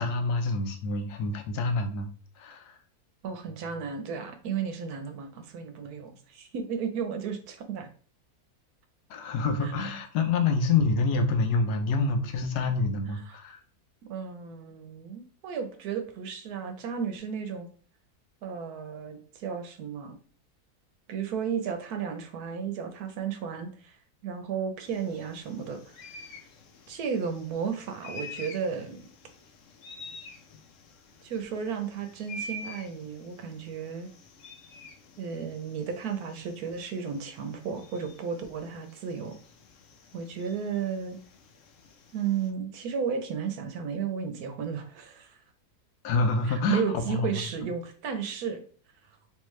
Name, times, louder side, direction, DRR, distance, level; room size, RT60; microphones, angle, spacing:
voice 1, 0.0-2.1 2.4-2.7 9.1-13.6 46.0-46.8 47.1-47.4, left 3 dB, 80° left, 6 dB, 1.2 m, -27 dB
voice 2, 3.2-7.9 9.6-9.7 13.3-13.4 14.1-17.7 18.4-20.2 21.1-24.0 24.2-26.3 26.9-29.0 31.2-34.1 35.2-39.4 40.1-41.2 42.1-45.4 46.4-48.6, right 6 dB, 75° right, 7 dB, 1.2 m, -33 dB
sound 1, 24.8-42.5, left 1 dB, 65° left, 0.9 m, -48 dB
3.7 x 3.2 x 3.1 m, 0.42 s
omnidirectional pair, 1.7 m